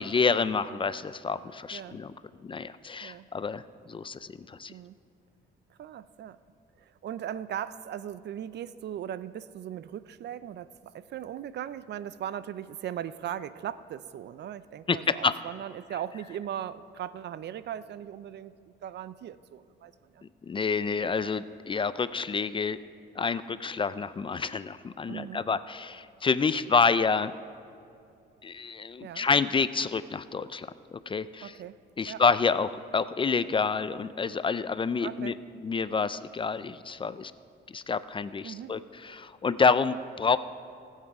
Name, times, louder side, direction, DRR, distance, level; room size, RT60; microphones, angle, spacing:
voice 1, 0.0-2.1 2.4-3.6 3.9-4.7 14.9-15.3 20.4-22.8 23.2-27.3 28.4-31.5 32.0-35.4 35.6-37.3 37.7-40.4, left 5 dB, 25° left, 15 dB, 0.3 m, -28 dB
voice 2, 5.8-6.4 6.8-20.2 25.1-25.4 29.0-29.3 31.4-31.7 32.1-32.2 35.0-35.4 38.4-38.8, right 10 dB, 60° right, 16 dB, 0.4 m, -38 dB
18.5 x 7.4 x 4.8 m, 2.6 s
cardioid pair, 90°, 20 cm